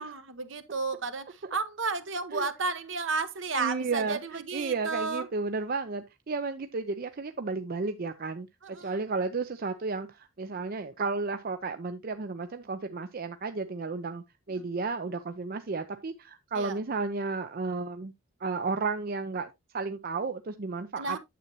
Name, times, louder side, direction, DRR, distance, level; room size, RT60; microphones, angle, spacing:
voice 1, 0.0-5.3 8.6-8.9 14.5-14.6 16.5-16.8 21.0-21.2, right 4 dB, 65° right, 1.0 m, -33 dB
voice 2, 3.5-18.1 18.4-21.2, right 4 dB, 45° right, 0.5 m, -33 dB
9.3 x 7.4 x 2.9 m
head